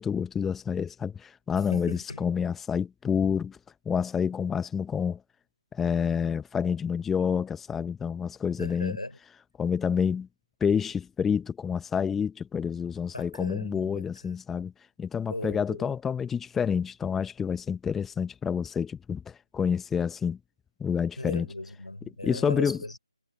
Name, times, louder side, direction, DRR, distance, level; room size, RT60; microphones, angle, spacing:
voice 1, 0.0-3.6 3.9-5.2 5.7-9.0 9.6-10.3 10.6-14.7 15.0-20.4 20.8-21.5 22.2-22.8, left 7 dB, 5° left, 0.9 m, -28 dB
voice 2, 1.6-2.2 8.6-9.2 13.1-14.4 15.3-15.9 21.2-23.0, left 1 dB, 90° left, 4.4 m, -38 dB
figure-of-eight pair, 155°, 3 cm